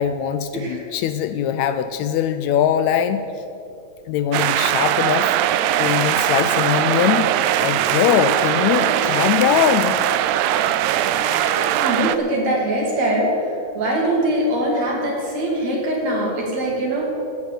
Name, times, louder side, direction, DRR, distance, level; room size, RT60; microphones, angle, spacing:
voice 1, 0.0-3.3 4.1-5.3 5.8-7.3 7.6-10.0, left 9 dB, 80° left, 10 dB, 1.7 m, -21 dB
voice 2, 0.5-0.8 8.0-8.2 8.8-8.9 10.6-10.7 11.0-17.1, right 1 dB, 60° right, -2 dB, 3.8 m, -23 dB
sound 1, 4.3-12.2, right 12 dB, 80° right, 2.0 m, -20 dB
16.5 x 7.3 x 7.9 m, 2.8 s
omnidirectional pair, 3.5 m